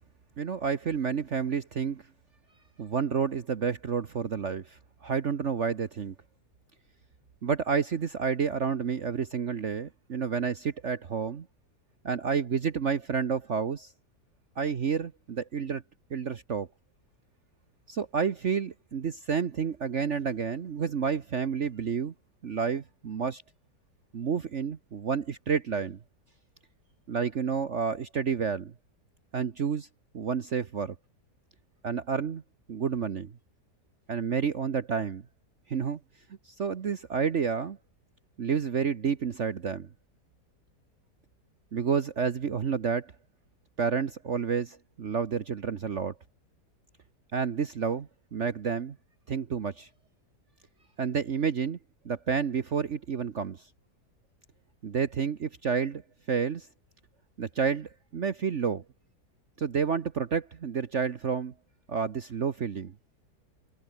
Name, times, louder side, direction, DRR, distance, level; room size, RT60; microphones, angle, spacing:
voice 1, 0.4-2.0 2.8-6.1 7.4-11.5 12.0-13.9 14.6-15.8 16.1-16.7 17.9-22.1 22.4-23.4 24.1-26.0 27.1-28.7 29.3-29.9 30.1-30.9 31.8-32.4 32.7-33.3 34.1-35.2 35.7-36.0 36.6-37.8 38.4-39.9 41.7-43.1 43.8-46.1 47.3-49.0 49.3-49.9 51.0-51.8 52.0-53.6 54.8-56.0 56.3-56.7 57.4-58.8 59.6-61.5 61.9-62.9, right 6 dB, 50° right, 1.3 m, -30 dB
omnidirectional pair, 1.8 m